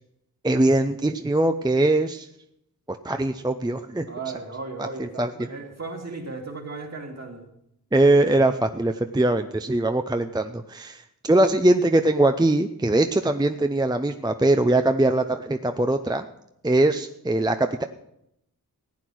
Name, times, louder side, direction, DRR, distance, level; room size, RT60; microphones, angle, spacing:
voice 1, 0.4-2.3 2.9-4.1 4.8-5.3 7.9-16.2 16.6-17.8, right 2 dB, 10° right, 7 dB, 0.6 m, -21 dB
voice 2, 4.1-7.5, right 3 dB, 45° right, 1 dB, 2.5 m, -36 dB
15.5 x 9.0 x 6.2 m, 0.78 s
wide cardioid pair, 80°, 35 cm